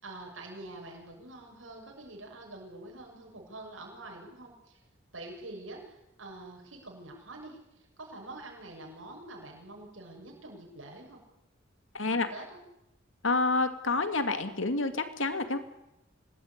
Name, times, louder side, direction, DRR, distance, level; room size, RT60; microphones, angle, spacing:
voice 1, 0.0-4.8 5.1-11.2 12.0-12.6, right 2 dB, 85° right, 0 dB, 6.9 m, -46 dB
voice 2, 11.9-12.3 13.2-15.6, left 3 dB, 80° left, 9 dB, 2.6 m, -28 dB
25.5 x 19.5 x 9.7 m, 0.90 s
head